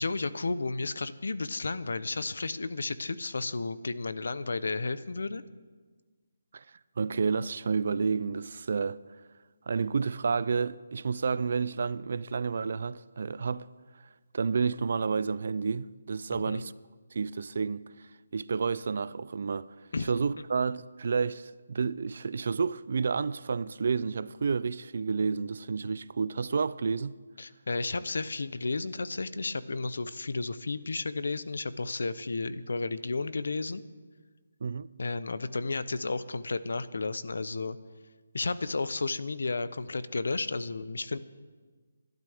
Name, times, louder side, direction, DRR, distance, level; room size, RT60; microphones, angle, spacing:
voice 1, 0.0-5.4 16.3-16.6 19.9-20.1 27.4-33.8 35.0-37.8 38.3-41.2, left 3 dB, 75° left, 0.7 m, -32 dB
voice 2, 7.0-9.0 9.7-13.7 14.3-16.7 17.1-17.8 18.3-19.7 20.0-27.2 34.6-34.9, right 5 dB, 50° right, 0.4 m, -30 dB
25.0 x 12.0 x 3.5 m
hypercardioid pair, 175°, 0 cm